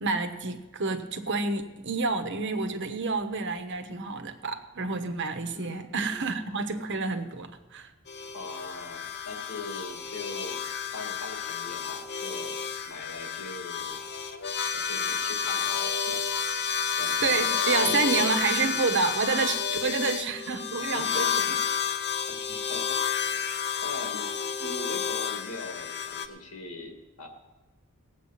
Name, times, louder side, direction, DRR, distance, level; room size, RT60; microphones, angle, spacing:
voice 1, 0.0-7.9 17.2-21.6, right 4 dB, 55° right, 8 dB, 1.2 m, -29 dB
voice 2, 5.5-6.3 8.3-10.6 10.9-14.1 14.7-16.6 17.0-18.2 18.6-18.8 19.8-20.0 20.8-21.7 22.3-23.0 23.3-24.3 24.6-27.3, left 2 dB, 90° left, 3 dB, 2.3 m, -42 dB
sound 1, 8.1-26.3, left 7 dB, 50° left, 0.9 m, -30 dB
18.5 x 8.3 x 5.9 m, 1.2 s
head